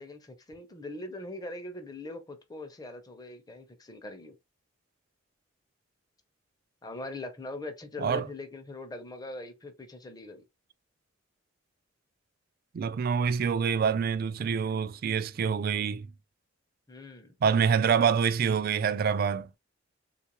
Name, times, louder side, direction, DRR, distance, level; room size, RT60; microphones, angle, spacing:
voice 1, 0.0-4.4 6.8-10.4 16.9-17.3, left 2 dB, 20° left, 0.6 m, -41 dB
voice 2, 12.7-16.1 17.4-19.5, right 6 dB, 50° right, 0.3 m, -26 dB
3.6 x 2.4 x 2.9 m
head